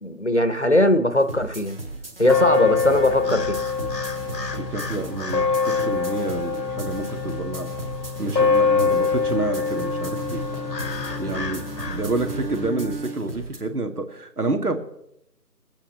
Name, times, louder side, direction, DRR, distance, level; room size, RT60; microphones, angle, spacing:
voice 1, 0.0-1.8 2.2-3.6, left 1 dB, 45° left, 10 dB, 0.7 m, -20 dB
sound 1, 1.2-13.6, right 2 dB, 35° right, 1.7 m, -37 dB
sound 2, 2.2-12.7, left 5 dB, 85° left, 1.0 m, -25 dB
voice 2, 4.6-7.7 8.2-10.4 11.2-11.6 11.9-14.8, right 2 dB, 65° right, 7 dB, 1.8 m, -28 dB
Bowed string instrument, 8.2-13.5, right 4 dB, 85° right, 1.1 m, -36 dB
21.5 x 8.6 x 3.2 m, 0.81 s
figure-of-eight pair, 170°, 49 cm